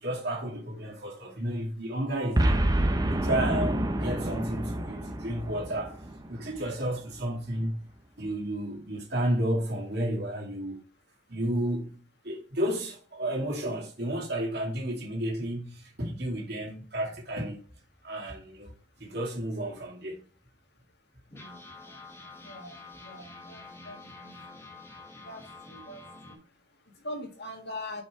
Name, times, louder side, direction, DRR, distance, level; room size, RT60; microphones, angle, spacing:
voice 1, 0.0-2.7 3.1-6.0 6.3-7.8 8.2-10.8 11.3-17.6 18.0-20.3 21.8-22.0, right 1 dB, 55° right, 2.2 m, -32 dB
Boom, 2.4-6.8, right 1 dB, 20° right, 0.7 m, -28 dB
sound 1, 15.5-18.5 18.9-19.0 19.3-19.5 20.1-20.2 21.3-26.4, left 3 dB, 15° left, 1.6 m, -48 dB
voice 2, 20.7-28.0, left 1 dB, 60° left, 1.9 m, -45 dB
5.5 x 5.3 x 4.6 m
head